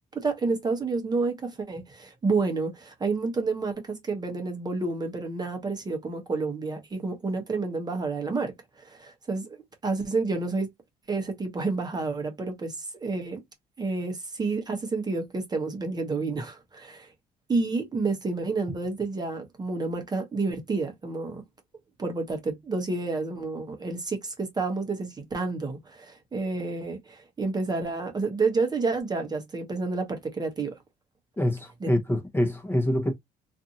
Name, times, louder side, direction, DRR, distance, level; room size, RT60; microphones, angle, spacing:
voice 1, 0.1-9.6 9.8-10.7 11.1-13.4 13.8-17.1 17.5-21.4 22.0-30.7 31.8-31.9, right 3 dB, 25° right, 0.9 m, -29 dB
voice 2, 31.4-33.1, left 1 dB, 15° left, 0.8 m, -25 dB
2.6 x 2.4 x 2.7 m
cardioid pair, 110°, 17 cm